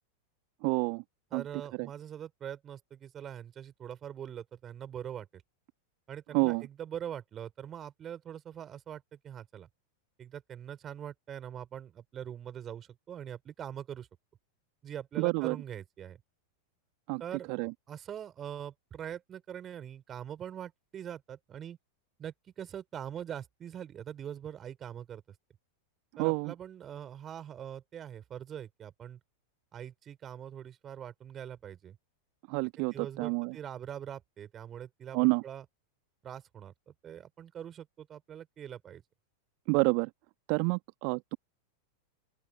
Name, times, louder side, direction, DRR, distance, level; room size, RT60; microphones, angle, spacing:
voice 1, 0.6-1.0 1.3-1.4 1.8-1.9 6.3-6.6 15.2-15.6 17.1-17.2 17.5-17.7 26.2-26.5 32.5-33.5 35.1-35.4 39.7-40.1 40.5-41.4, right 40 dB or more, 45° right, 1.5 m, -28 dB
voice 2, 1.3-5.4 6.1-9.7 10.2-14.1 14.8-16.2 17.2-21.8 22.2-25.3 26.2-29.2 29.7-32.0 32.8-35.6 36.2-39.0, right 9 dB, 25° right, 4.9 m, -43 dB
open air
figure-of-eight pair, 90°, 0 cm